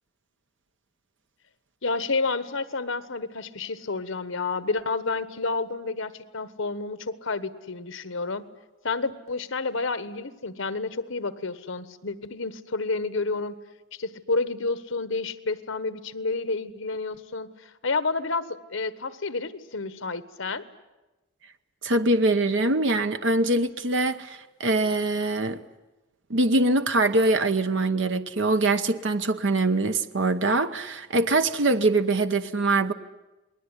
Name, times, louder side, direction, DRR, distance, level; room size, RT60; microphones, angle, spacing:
voice 1, 1.8-8.4 8.8-13.6 13.9-20.6, left 3 dB, 80° left, 13 dB, 1.3 m, -30 dB
voice 2, 21.8-25.6 26.3-32.9, right 2 dB, 65° right, 9 dB, 1.0 m, -23 dB
28.5 x 20.0 x 9.8 m, 1.1 s
head